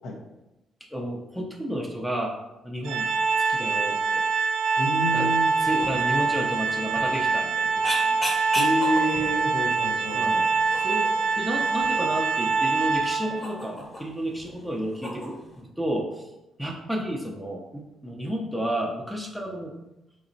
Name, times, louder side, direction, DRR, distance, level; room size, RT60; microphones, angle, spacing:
voice 1, 0.9-2.3 2.6-3.1 3.5-4.2 5.1-5.3 5.6-7.9 10.1-10.4 10.8-11.1 11.4-16.3 16.6-19.7, equal, ahead, -1 dB, 0.5 m, -31 dB
Organ, 2.8-13.5, right 4 dB, 80° right, 0.4 m, -24 dB
voice 2, 4.8-5.5 8.5-10.4, equal, 80° left, 2 dB, 0.7 m, -28 dB
sound 1, 5.5-15.6, left 1 dB, 25° left, 0.9 m, -38 dB
4.0 x 2.9 x 2.6 m, 0.96 s
cardioid pair, 90°, 0 cm